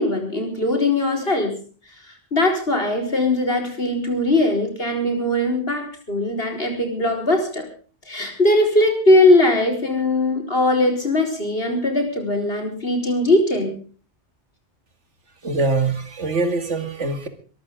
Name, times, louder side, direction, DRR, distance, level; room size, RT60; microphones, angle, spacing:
voice 1, 0.0-1.6 2.3-7.7 8.1-13.8, left 1 dB, 55° left, 3 dB, 4.8 m, -20 dB
voice 2, 15.4-17.3, right 3 dB, 85° right, 9 dB, 2.7 m, -23 dB
22.0 x 14.0 x 3.7 m, 0.39 s
omnidirectional pair, 1.2 m